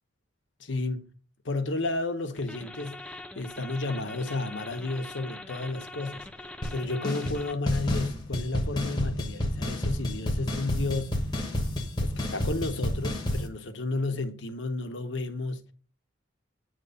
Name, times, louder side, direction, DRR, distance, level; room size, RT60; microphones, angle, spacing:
voice 1, 0.6-1.1 1.4-6.3 6.7-11.2 12.0-15.6, left 2 dB, 70° left, 0.9 m, -32 dB
sound 1, 2.4-7.7, left 2 dB, 5° left, 0.4 m, -43 dB
sound 2, 6.6-6.8 7.0-7.4 7.7-13.5, left 1 dB, 20° left, 1.1 m, -30 dB
8.9 x 3.0 x 5.5 m
head